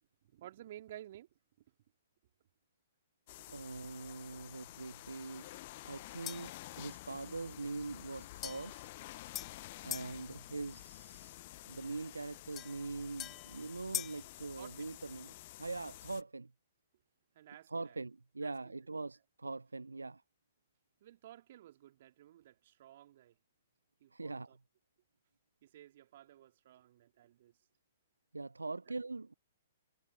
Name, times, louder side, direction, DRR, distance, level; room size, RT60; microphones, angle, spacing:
voice 1, 0.3-1.3 14.6-14.9 17.3-18.0 18.4-18.5 21.0-23.3 24.0-24.6 25.6-27.5, right 12 dB, 50° right, 3.2 m, -54 dB
Liquid Nitrogen, 3.3-16.2, left 18 dB, 40° left, 1.2 m, -51 dB
voice 2, 3.5-8.9 9.8-11.3 11.6-16.5 17.7-20.2 24.1-24.6 28.3-29.3, right 3 dB, 80° right, 0.9 m, -43 dB
sound 1, 6.3-6.6 8.4-10.2 12.6-14.3, left 12 dB, 20° left, 2.2 m, -44 dB
figure-of-eight pair, 115°, 0 cm